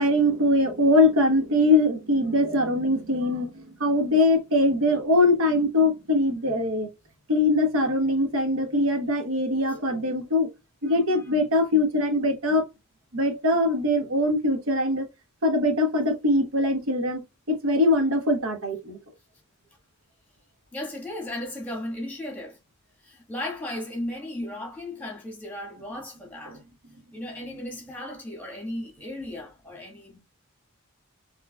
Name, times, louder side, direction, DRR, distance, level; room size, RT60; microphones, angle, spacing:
voice 1, 0.0-6.9 7.3-10.5 10.8-12.6 13.1-15.1 15.4-19.0 26.5-26.6, left 1 dB, 80° right, 1.1 m, -22 dB
voice 2, 20.7-22.6 23.0-26.6 27.1-30.2, left 1 dB, 10° left, 1.4 m, -35 dB
4.5 x 3.1 x 2.2 m
head